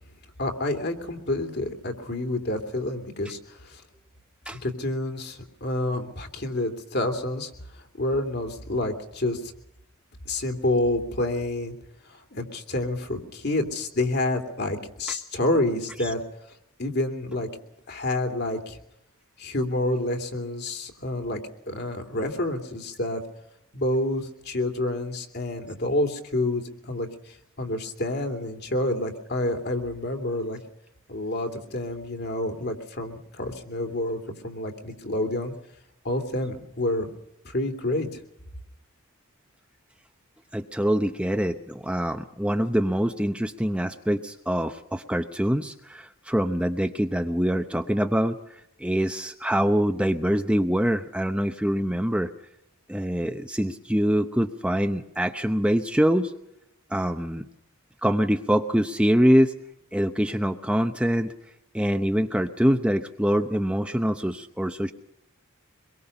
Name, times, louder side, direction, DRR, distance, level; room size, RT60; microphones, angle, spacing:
voice 1, 0.4-3.4 3.7-3.8 4.5-7.5 8.0-9.4 10.2-11.7 12.3-16.2 16.8-17.5 17.9-18.8 19.4-21.4 21.7-23.2 23.7-27.1 27.6-30.6 31.1-35.5 36.0-37.1 37.4-38.2, left 1 dB, 50° left, 5 dB, 3.0 m, -28 dB
voice 2, 40.5-48.4 48.8-52.3 52.9-56.3 56.9-57.5 58.0-59.5 59.9-61.3 61.7-64.9, equal, 5° right, 6 dB, 0.8 m, -24 dB
25.0 x 22.0 x 5.5 m, 0.80 s
head